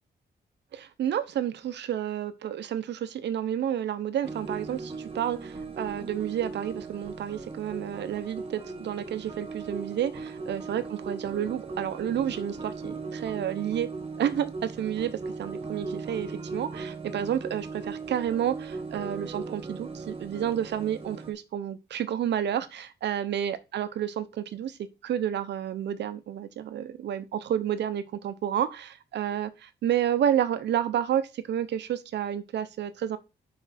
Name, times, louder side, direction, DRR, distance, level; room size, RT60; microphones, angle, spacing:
voice 1, 0.7-13.9 14.2-24.8 25.0-33.2, right 10 dB, 85° right, 0.9 m, -30 dB
sound 1, 4.2-21.3, right 4 dB, 30° right, 1.5 m, -38 dB
5.8 x 5.5 x 5.9 m
wide cardioid pair, 165°, 17 cm